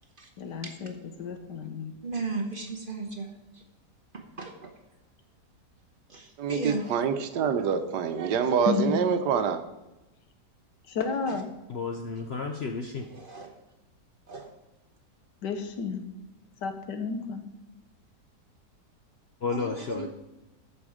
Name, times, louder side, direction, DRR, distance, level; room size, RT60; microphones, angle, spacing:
voice 1, 0.4-2.0 8.6-9.0 10.9-11.5 15.4-16.1 16.6-17.4, left 6 dB, 85° left, 7 dB, 1.6 m, -31 dB
voice 2, 2.0-3.3 4.1-4.7 6.1-6.8 13.1-13.5 14.3-14.5 19.5-20.1, right 3 dB, 40° right, 4 dB, 0.9 m, -35 dB
voice 3, 6.4-9.6, right 7 dB, 80° right, 9 dB, 1.4 m, -26 dB
voice 4, 11.7-13.1 19.4-20.1, left 4 dB, 55° left, 4 dB, 0.7 m, -32 dB
13.5 x 5.3 x 5.0 m, 1.0 s
omnidirectional pair, 1.8 m